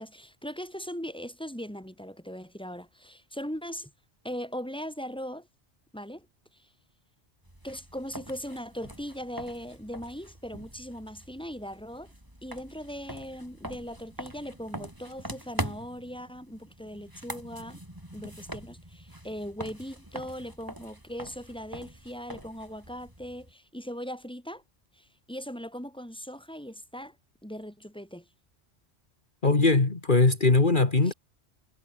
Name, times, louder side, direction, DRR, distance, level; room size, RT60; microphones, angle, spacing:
voice 1, 0.0-3.9 4.2-5.5 5.9-6.3 6.5-6.7 7.6-12.1 12.4-17.8 18.1-24.6 24.9-27.1 27.4-28.3 31.0-31.1, equal, 5° left, 6.1 m, -39 dB
sound 1, 7.4-23.5, equal, 15° right, 6.4 m, -43 dB
voice 2, 29.4-31.1, left 3 dB, 45° left, 2.5 m, -21 dB
omnidirectional pair, 1.2 m